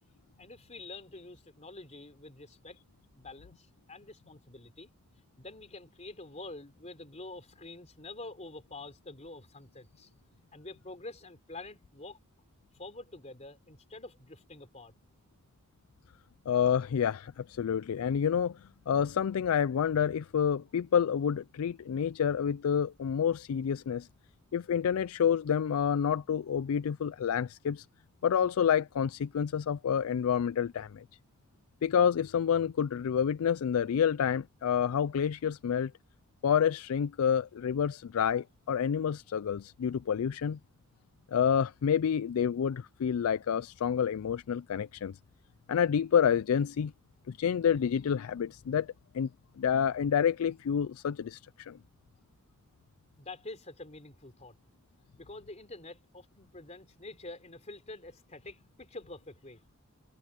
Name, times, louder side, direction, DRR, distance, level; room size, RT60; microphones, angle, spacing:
voice 1, 0.4-2.8 3.1-4.9 5.4-10.1 10.5-12.2 12.8-14.9 53.2-54.5 55.2-59.6, left 2 dB, 35° left, 3.6 m, -47 dB
voice 2, 16.5-24.1 24.5-27.9 28.2-31.0 31.8-35.9 36.4-40.6 41.3-45.2 45.7-46.9 47.3-49.3 49.6-51.8, left 8 dB, 85° left, 0.4 m, -28 dB
head